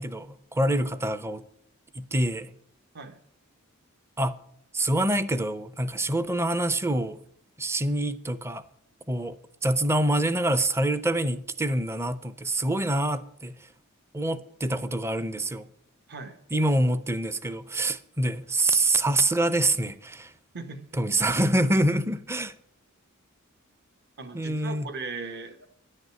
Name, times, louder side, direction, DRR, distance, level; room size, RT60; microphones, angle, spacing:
voice 1, 0.0-1.4 1.9-2.5 4.2-4.4 4.7-7.2 7.6-8.6 9.1-9.4 9.6-13.7 14.1-15.7 16.5-20.3 20.9-22.6 24.3-24.9, right 1 dB, 10° right, 0.6 m, -26 dB
voice 2, 20.5-21.0 24.2-25.7, right 3 dB, 50° right, 1.2 m, -38 dB
10.5 x 6.6 x 9.0 m
head